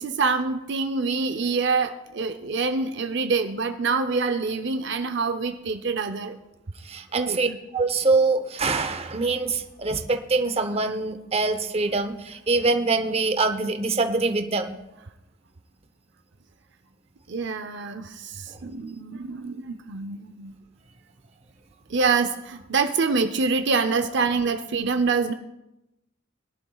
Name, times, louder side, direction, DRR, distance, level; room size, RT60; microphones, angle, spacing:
voice 1, 0.0-6.3 7.1-7.6 17.3-20.5 21.9-25.3, right 4 dB, 60° right, 8 dB, 0.6 m, -26 dB
voice 2, 6.9-7.5 7.7-14.8, right 3 dB, 30° right, 7 dB, 0.8 m, -24 dB
21.0 x 11.0 x 2.3 m, 0.91 s
head